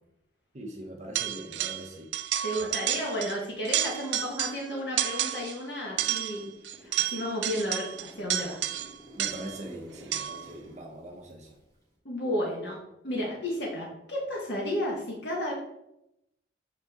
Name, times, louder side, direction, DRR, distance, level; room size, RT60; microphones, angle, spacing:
voice 1, 0.5-2.1 9.2-11.6, right 1 dB, 40° right, 1 dB, 0.8 m, -42 dB
sound 1, 1.2-1.9 2.1-3.4 3.6-4.7 5.0-5.6 6.0-9.6 10.1-10.5, right 12 dB, 70° right, 0.4 m, -31 dB
voice 2, 2.4-8.6 12.0-15.5, equal, 65° left, -3 dB, 1.3 m, -33 dB
Zipper (clothing), 5.9-6.9 7.2-11.9, equal, 20° left, 1.8 m, -51 dB
7.3 x 4.2 x 3.6 m, 0.84 s
head